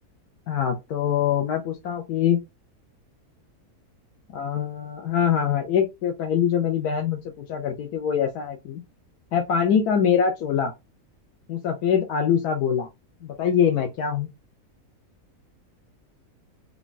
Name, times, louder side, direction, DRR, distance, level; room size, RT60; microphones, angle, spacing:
voice 1, 0.5-2.4 4.3-8.8 9.3-10.7 11.5-12.9 13.2-14.3, left 8 dB, 85° left, 3 dB, 1.2 m, -24 dB
3.7 x 2.3 x 3.8 m, 0.22 s
omnidirectional pair, 1.6 m